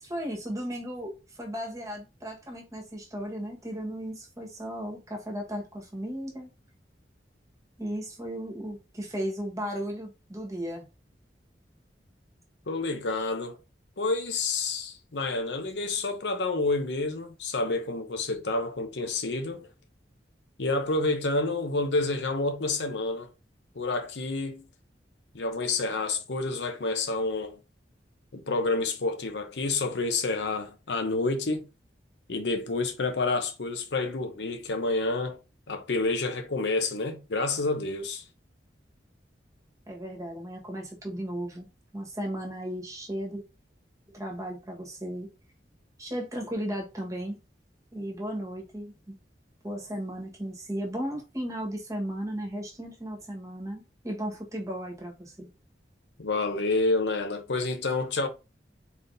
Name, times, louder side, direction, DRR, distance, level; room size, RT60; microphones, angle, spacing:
voice 1, 0.0-6.5 7.8-10.8 39.9-41.7 41.9-43.4 44.1-45.3 46.0-47.3 47.9-49.1 49.6-55.5, equal, 20° right, 1.3 m, -35 dB
voice 2, 12.7-13.6 14.0-19.7 20.6-23.3 23.8-24.7 25.3-27.6 28.3-31.7 32.3-35.4 35.7-38.2 56.2-58.3, left 3 dB, 75° left, 0.8 m, -29 dB
4.1 x 3.5 x 2.6 m
head